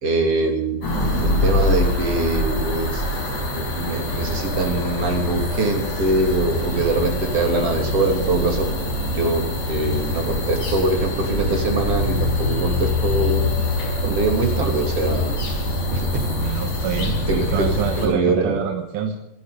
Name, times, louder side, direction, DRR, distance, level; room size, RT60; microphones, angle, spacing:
voice 1, 0.0-0.8 1.2-3.0 3.5-8.7 9.1-13.5 14.0-15.4 15.9-16.7 17.3-17.7 18.0-18.6, right 2 dB, 45° right, 3 dB, 3.8 m, -23 dB
sound 1, 0.8-18.1, left 1 dB, 50° left, 6.4 m, -24 dB
voice 2, 16.2-19.1, right 8 dB, 65° right, 5 dB, 2.5 m, -27 dB
26.5 x 10.5 x 5.2 m, 0.90 s
omnidirectional pair, 4.1 m